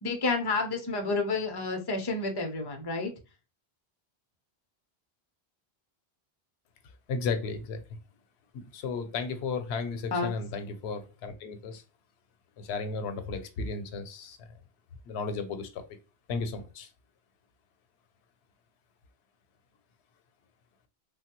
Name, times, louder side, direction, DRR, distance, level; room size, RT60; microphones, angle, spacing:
voice 1, 0.0-3.1 10.1-10.3, left 3 dB, 30° left, 3 dB, 0.5 m, -30 dB
voice 2, 7.1-7.8 8.5-11.8 12.6-14.5 15.0-15.8 16.3-16.9, left 4 dB, 85° left, 9 dB, 0.8 m, -34 dB
3.2 x 2.2 x 2.9 m, 0.30 s
omnidirectional pair, 1.1 m